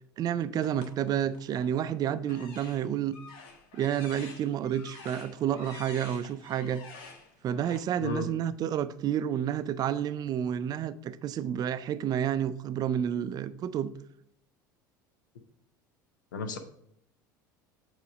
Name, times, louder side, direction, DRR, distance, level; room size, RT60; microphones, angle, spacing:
voice 1, 0.2-3.2 3.7-6.8 7.4-13.9, right 9 dB, 40° right, 0.5 m, -30 dB
sound 1, 0.6-1.7 2.2-7.8, left 4 dB, 55° left, 1.2 m, -49 dB
voice 2, 8.0-8.3 16.3-16.6, left 3 dB, 75° left, 0.8 m, -33 dB
8.2 x 3.2 x 4.9 m
figure-of-eight pair, 70°, 10 cm